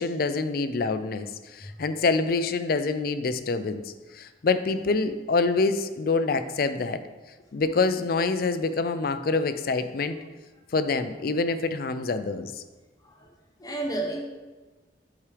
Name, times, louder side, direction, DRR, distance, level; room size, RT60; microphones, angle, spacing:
voice 1, 0.0-7.0 7.5-10.2 10.7-12.6, left 3 dB, 55° left, 10 dB, 0.4 m, -26 dB
voice 2, 13.6-14.2, right 2 dB, 20° left, 0 dB, 0.7 m, -31 dB
8.5 x 4.8 x 3.3 m, 1.2 s
head